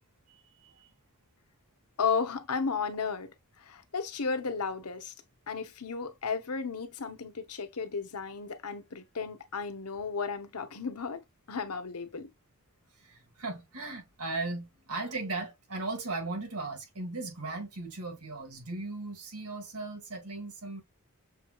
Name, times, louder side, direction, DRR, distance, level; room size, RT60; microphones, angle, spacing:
voice 1, 0.3-0.9 13.0-20.8, right 3 dB, 85° right, 1.9 m, -37 dB
voice 2, 2.0-5.1 5.5-12.3, left 5 dB, 90° left, 1.0 m, -34 dB
6.6 x 3.0 x 2.4 m
head